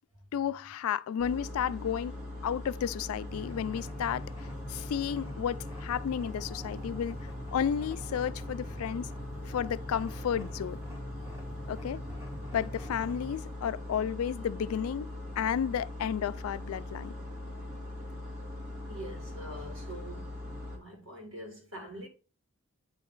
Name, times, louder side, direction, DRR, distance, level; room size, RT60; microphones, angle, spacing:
voice 1, 0.3-2.2 2.4-4.2 4.7-7.2 7.5-9.1 9.5-10.8 11.7-12.0 12.5-17.1, left 8 dB, 75° left, 0.3 m, -32 dB
sound 1, 1.2-20.8, left 1 dB, 85° right, 2.2 m, -41 dB
sound 2, 3.3-13.3, equal, 15° right, 1.7 m, -45 dB
voice 2, 18.9-20.4 20.7-22.1, right 1 dB, 60° right, 2.1 m, -44 dB
8.6 x 3.1 x 3.8 m
head